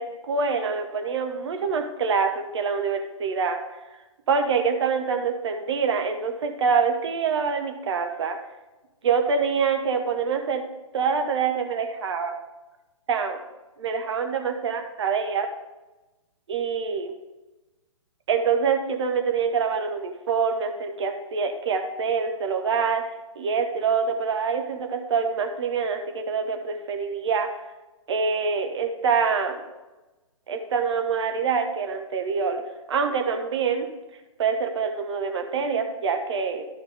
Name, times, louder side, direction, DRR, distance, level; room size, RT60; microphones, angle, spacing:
voice 1, 0.0-3.6 4.3-8.4 9.0-10.6 10.9-12.4 13.1-13.4 13.8-15.5 16.5-17.1 18.3-23.0 23.3-27.5 28.1-29.6 30.5-32.6 32.9-33.9 34.4-36.6, right 5 dB, 55° right, 5 dB, 1.3 m, -25 dB
13.0 x 5.0 x 3.6 m, 1.1 s
figure-of-eight pair, 130°, 17 cm